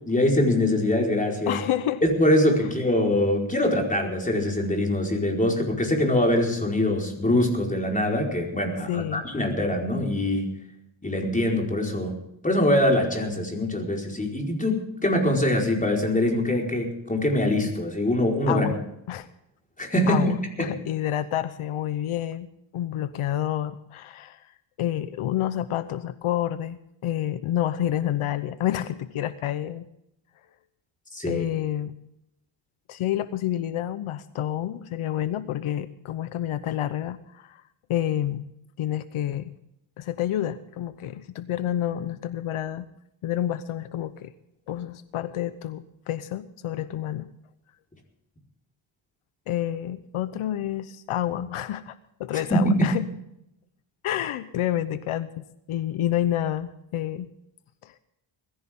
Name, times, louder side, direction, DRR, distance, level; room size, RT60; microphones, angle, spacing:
voice 1, 0.1-1.6 2.0-10.5 11.0-12.2 12.4-18.7 19.8-20.3 20.6-20.7 31.1-31.5 52.5-53.0, left 1 dB, 15° left, 1 dB, 4.8 m, -23 dB
voice 2, 1.5-2.0 8.9-9.2 18.5-18.8 19.1-19.3 20.1-22.5 22.7-24.5 24.8-29.9 31.3-31.9 32.9-37.6 37.9-38.4 38.8-39.5 40.0-42.9 43.2-44.3 44.7-47.3 49.5-53.0 54.0-57.3 57.8-57.9, left 12 dB, 80° left, 13 dB, 0.9 m, -29 dB
21.0 x 15.0 x 3.7 m, 0.82 s
cardioid pair, 105°, 49 cm